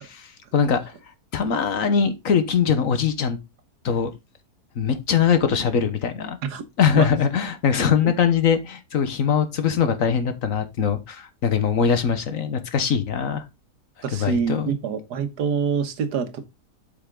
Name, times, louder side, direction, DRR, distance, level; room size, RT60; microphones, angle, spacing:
voice 1, 0.2-0.8 1.3-3.4 3.8-4.1 4.8-6.4 6.8-13.4 14.1-14.7, left 7 dB, 60° left, 1.4 m, -22 dB
voice 2, 14.0-16.5, right 6 dB, 90° right, 1.7 m, -25 dB
8.1 x 5.7 x 3.7 m
omnidirectional pair, 1.7 m